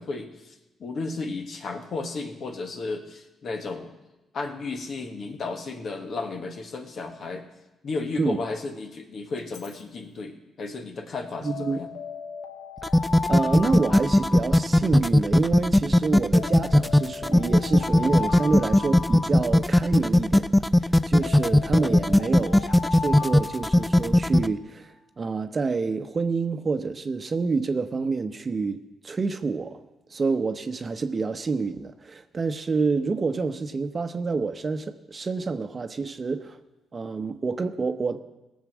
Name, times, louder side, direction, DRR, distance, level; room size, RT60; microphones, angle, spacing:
voice 1, 0.0-3.9 4.3-7.5 7.8-11.9 21.9-22.1, left 3 dB, 60° left, 5 dB, 1.6 m, -34 dB
Alarm, 9.4-9.8 11.5-15.2 16.3-20.1 21.2-24.4, left 4 dB, 85° left, 1.0 m, -36 dB
voice 2, 11.4-11.8 13.3-29.8 30.1-36.6 36.9-38.2, right 4 dB, 40° right, 9 dB, 0.9 m, -28 dB
sound 1, 12.8-24.5, left 1 dB, 10° left, 0.4 m, -18 dB
18.0 x 7.4 x 6.2 m, 1.0 s
supercardioid pair, 70°, 0 cm